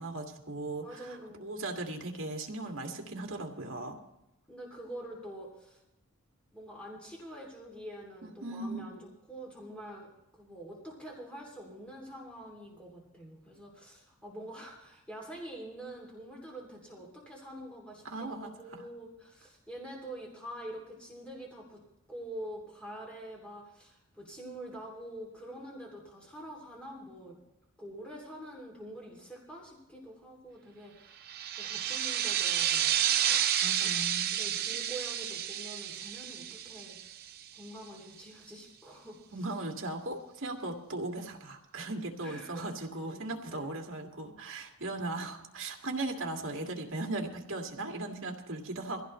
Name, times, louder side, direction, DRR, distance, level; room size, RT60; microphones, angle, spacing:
voice 1, 0.0-4.0 8.4-8.9 18.0-18.9 33.6-34.3 39.3-49.0, right 2 dB, 60° right, 1 dB, 2.4 m, -38 dB
voice 2, 0.8-1.5 4.5-5.8 6.5-21.8 22.1-27.4 27.8-33.0 33.8-33.9 34.3-37.2 37.5-39.4 42.2-43.2 43.5-43.8, right 1 dB, 5° left, -2 dB, 3.0 m, -46 dB
sound 1, 31.3-37.6, right 10 dB, 45° right, 0.7 m, -30 dB
23.5 x 16.0 x 3.2 m, 0.88 s
head